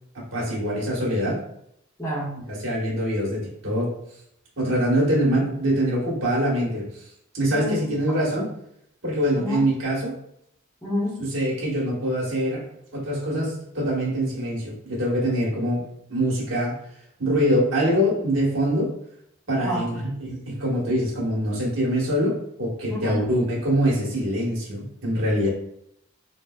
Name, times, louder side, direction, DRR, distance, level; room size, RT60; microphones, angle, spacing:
voice 1, 0.1-1.4 2.5-3.9 4.6-7.0 7.3-8.5 9.0-10.2 11.2-12.6 12.9-15.8 16.1-16.8 17.2-18.9 19.5-25.5, equal, 60° right, -5 dB, 1.2 m, -24 dB
voice 2, 2.0-2.4 7.5-7.9 9.4-9.6 10.8-11.2 19.6-19.9 22.9-23.3, left 1 dB, 15° left, -7 dB, 0.8 m, -29 dB
4.7 x 2.1 x 2.2 m, 0.74 s
head